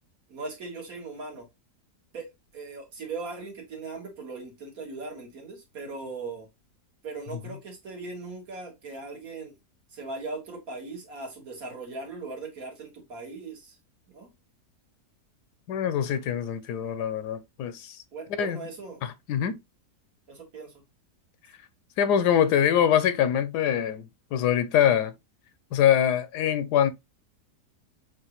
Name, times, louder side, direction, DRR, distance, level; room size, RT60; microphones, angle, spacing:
voice 1, 0.3-1.5 2.1-6.5 7.0-9.5 9.9-13.8 14.1-14.3 18.1-19.0 20.3-20.8, right 3 dB, 60° right, 2.0 m, -39 dB
voice 2, 15.7-18.0 18.3-18.6 19.0-19.6 22.0-25.1 25.7-26.9, left 9 dB, 85° left, 1.2 m, -24 dB
6.3 x 2.6 x 3.0 m
omnidirectional pair, 1.7 m